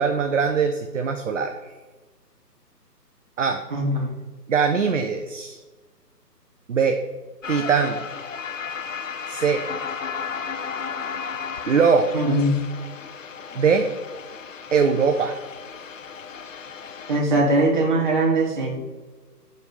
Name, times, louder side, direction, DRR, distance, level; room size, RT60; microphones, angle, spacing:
voice 1, 0.0-1.5 3.4-3.6 4.5-5.6 6.7-7.0 7.5-8.0 9.3-9.6 11.7-12.1 13.6-13.9 14.7-15.4, right 6 dB, 50° right, 5 dB, 0.5 m, -21 dB
voice 2, 3.7-4.1 12.1-12.6 17.1-18.8, right 2 dB, 30° right, -2 dB, 1.5 m, -21 dB
sound 1, 7.4-17.2, left 6 dB, 50° left, 0.6 m, -34 dB
6.7 x 5.0 x 4.2 m, 1.3 s
hypercardioid pair, 160°, 49 cm